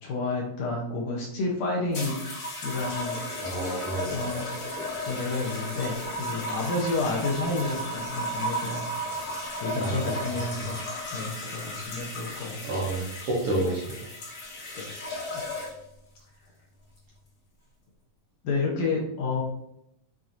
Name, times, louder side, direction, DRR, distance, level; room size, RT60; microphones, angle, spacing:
voice 1, 0.0-2.2 2.6-3.2 4.1-4.5 5.1-8.9 9.6-10.8 11.1-12.7 14.8-14.9 18.4-19.4, left 3 dB, 70° left, -1 dB, 1.8 m, -30 dB
sound 1, 1.9-15.9 16.8-17.2, left 1 dB, 45° left, 1.6 m, -35 dB
voice 2, 3.4-4.2 9.7-10.4 12.6-14.1, right 2 dB, 60° right, -5 dB, 1.7 m, -30 dB
7.3 x 2.8 x 2.5 m, 0.77 s
omnidirectional pair, 3.5 m